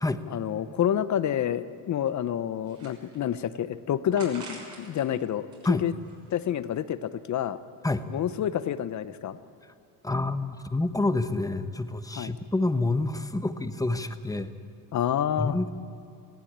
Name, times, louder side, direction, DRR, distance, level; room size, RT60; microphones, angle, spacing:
voice 1, 0.3-5.9 6.3-7.6 8.1-9.4 12.1-12.3 14.9-15.6, left 10 dB, 45° left, 14 dB, 0.9 m, -28 dB
sound 1, 2.5-3.4 4.2-5.0 5.4-6.6, right 3 dB, 50° right, 6.3 m, -46 dB
voice 2, 10.0-14.5 15.4-15.7, left 2 dB, 10° left, 10 dB, 1.0 m, -28 dB
18.5 x 17.0 x 8.8 m, 2.6 s
cardioid pair, 100°, 39 cm